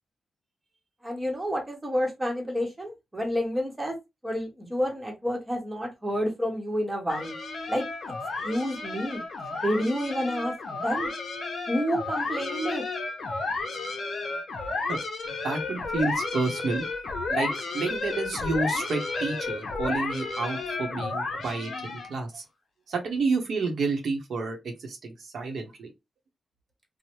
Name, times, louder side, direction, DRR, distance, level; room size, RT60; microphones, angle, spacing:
voice 1, 1.0-4.0 4.2-7.3 7.7-7.8 8.4-9.2 9.5-11.1 11.7-12.8, equal, 15° right, 0.9 m, -29 dB
sound 1, 7.1-22.2, left 3 dB, 60° left, 0.7 m, -32 dB
voice 2, 15.4-16.8 17.3-17.5 17.7-22.4 22.9-25.9, right 3 dB, 70° right, 0.8 m, -30 dB
3.1 x 2.0 x 2.9 m
wide cardioid pair, 155°, 0 cm